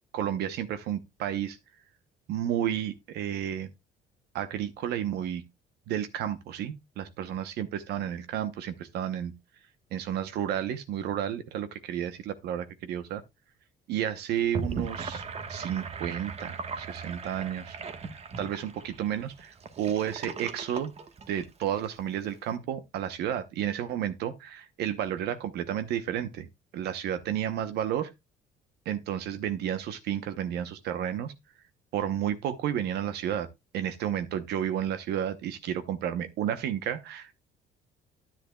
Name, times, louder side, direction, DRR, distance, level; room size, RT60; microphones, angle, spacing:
voice 1, 0.1-1.6 2.3-3.7 4.3-5.4 5.9-9.3 9.9-13.2 13.9-15.2 15.5-17.8 18.0-20.9 21.3-26.5 26.7-28.1 28.8-31.3 31.9-33.5 33.7-37.4, right 10 dB, 75° right, 0.8 m, -32 dB
Gurgling / Sink (filling or washing), 14.3-21.9, right 5 dB, 40° right, 1.2 m, -38 dB
10.5 x 9.8 x 2.2 m
cardioid pair, 110°, 17 cm